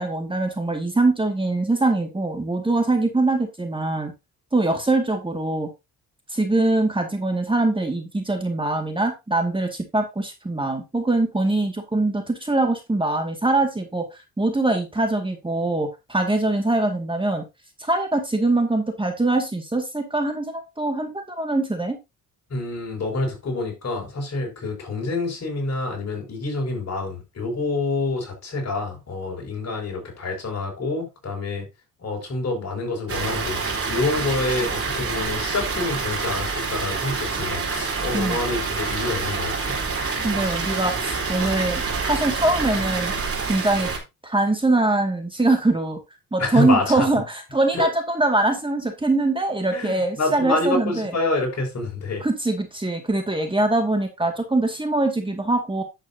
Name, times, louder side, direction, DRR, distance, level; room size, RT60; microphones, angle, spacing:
voice 1, 0.0-4.1 4.5-5.7 6.3-14.0 14.4-17.4 17.8-22.0 38.1-38.4 40.2-43.1 43.5-43.9 44.2-46.0 46.3-51.1 52.2-55.8, right 2 dB, 15° right, 2.1 m, -23 dB
voice 2, 22.5-31.7 32.0-33.6 33.9-39.7 46.4-47.1 47.7-47.9 49.7-52.2, left 2 dB, 50° left, 5.5 m, -27 dB
Water, 33.1-44.0, right 4 dB, 40° right, 4.0 m, -27 dB
10.0 x 8.0 x 2.8 m
cardioid pair, 75°, 35 cm